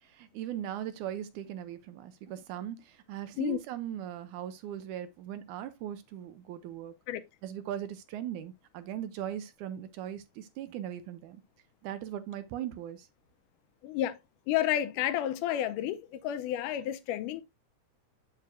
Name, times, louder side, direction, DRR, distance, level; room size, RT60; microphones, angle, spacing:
voice 1, 0.1-6.9 7.4-11.4 11.8-13.1, right 11 dB, 75° right, 2.1 m, -39 dB
voice 2, 13.8-14.2 14.5-17.4, left 12 dB, 80° left, 2.2 m, -31 dB
7.6 x 7.5 x 2.2 m
omnidirectional pair, 3.7 m